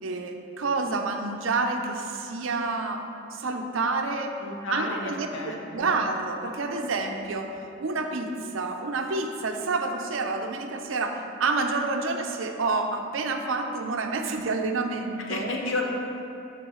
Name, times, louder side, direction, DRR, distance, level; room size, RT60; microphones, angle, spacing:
voice 1, 0.0-3.0 3.3-4.4 4.7-5.3 5.7-15.5, right 3 dB, 80° right, 4 dB, 0.6 m, -28 dB
voice 2, 4.4-5.9 15.2-15.8, left 2 dB, 80° left, 0 dB, 0.9 m, -32 dB
11.5 x 4.4 x 3.1 m, 2.8 s
head